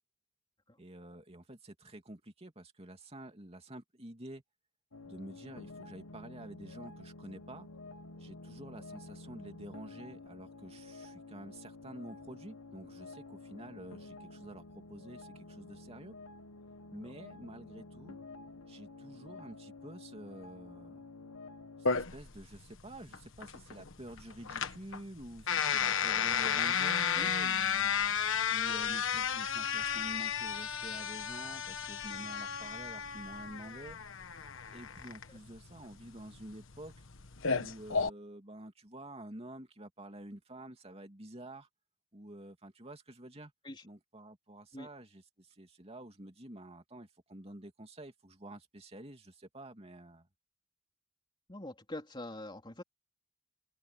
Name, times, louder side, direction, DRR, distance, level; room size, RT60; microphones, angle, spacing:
voice 1, 0.8-4.4 5.0-7.7 8.2-16.1 16.9-18.2 18.7-21.0 21.9-27.9 28.3-34.0 34.7-36.9 37.6-41.7 42.1-43.5 43.8-50.3, right 1 dB, 25° right, 2.8 m, -49 dB
sound 1, 4.9-21.9, left 2 dB, 80° left, 1.6 m, -50 dB
sound 2, 21.9-38.1, left 7 dB, 60° left, 1.4 m, -33 dB
voice 2, 51.5-52.8, left 1 dB, 20° left, 3.8 m, -43 dB
open air
head